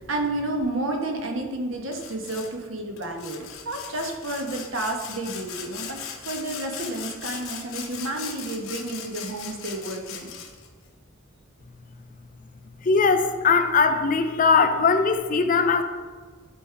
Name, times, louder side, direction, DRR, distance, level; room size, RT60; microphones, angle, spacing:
voice 1, 0.0-6.0 6.2-10.3, right 2 dB, 65° right, 2 dB, 1.2 m, -31 dB
Sawing, 1.9-2.5 3.0-10.7, left 7 dB, 80° left, 1.0 m, -38 dB
voice 2, 12.8-15.8, left 4 dB, 40° left, 8 dB, 0.5 m, -20 dB
10.5 x 3.7 x 4.6 m, 1.5 s
head